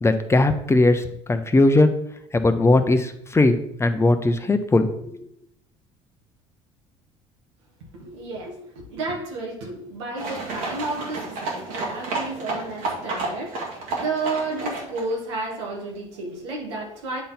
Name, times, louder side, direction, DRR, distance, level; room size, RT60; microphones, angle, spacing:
voice 1, 0.0-1.9 2.3-4.9, left 2 dB, 20° left, 8 dB, 0.8 m, -19 dB
voice 2, 7.9-17.2, right 3 dB, 90° right, 0 dB, 1.9 m, -32 dB
sound 1, 10.2-15.1, right 3 dB, 75° right, 2.1 m, -31 dB
9.1 x 3.8 x 4.3 m, 0.73 s
supercardioid pair, 75°, 14 cm